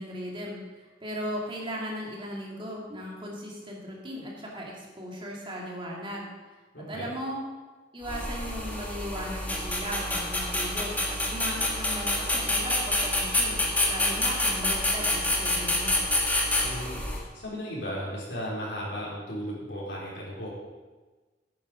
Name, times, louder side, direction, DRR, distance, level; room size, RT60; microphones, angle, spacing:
voice 1, 0.0-7.4 7.9-16.0, equal, 30° right, -2 dB, 2.6 m, -37 dB
voice 2, 6.7-7.1 16.6-20.5, equal, 70° left, -5 dB, 4.4 m, -35 dB
sound 1, 8.0-17.2, left 1 dB, 10° left, 1.7 m, -27 dB
10.5 x 9.6 x 5.1 m, 1.3 s
head